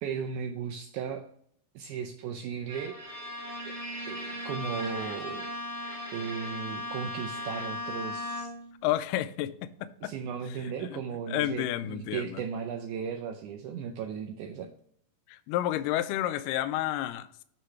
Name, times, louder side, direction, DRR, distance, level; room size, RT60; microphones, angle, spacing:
voice 1, 0.0-1.2 1.8-2.9 4.1-5.5 6.1-8.5 10.0-14.7, right 7 dB, 80° right, 2.0 m, -36 dB
Bowed string instrument, 2.7-8.8, left 1 dB, 25° right, 0.7 m, -37 dB
voice 2, 8.8-9.5 9.8-10.1 10.8-11.0 11.3-12.4 15.3-17.4, left 13 dB, 85° left, 2.1 m, -30 dB
8.2 x 3.8 x 5.7 m
omnidirectional pair, 3.8 m